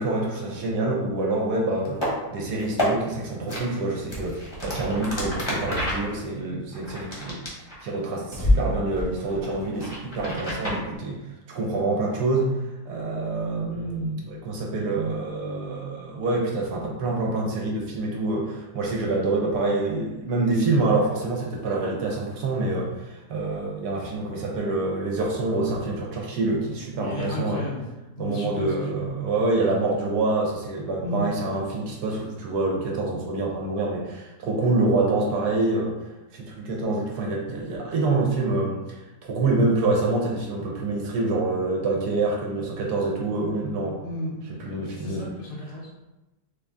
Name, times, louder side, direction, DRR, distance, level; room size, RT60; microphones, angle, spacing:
voice 1, 0.0-2.0 2.3-11.2 11.5-12.6 12.8-27.6 28.2-35.9 36.3-38.8 39.3-44.0 44.5-45.2, right 2 dB, 75° right, -2 dB, 1.3 m, -26 dB
sound 1, 1.9-2.1 2.6-2.9 3.5-3.6 4.1-8.0 8.3-8.6 8.9-10.8, left 1 dB, 20° left, 0.8 m, -28 dB
voice 2, 27.0-27.8 28.2-29.0 31.0-31.2 44.0-44.4 44.9-45.9, left 1 dB, 85° left, -4 dB, 1.6 m, -32 dB
3.8 x 2.6 x 3.4 m, 1.0 s
omnidirectional pair, 1.8 m